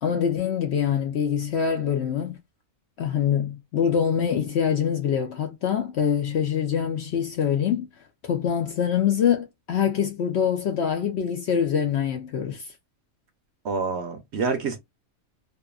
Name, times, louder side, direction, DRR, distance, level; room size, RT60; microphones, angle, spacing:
voice 1, 0.0-2.4 3.0-7.9 8.2-12.7, left 8 dB, 65° left, 0.7 m, -24 dB
voice 2, 13.6-14.8, right 4 dB, 60° right, 0.8 m, -27 dB
2.7 x 2.4 x 2.2 m
omnidirectional pair, 1.5 m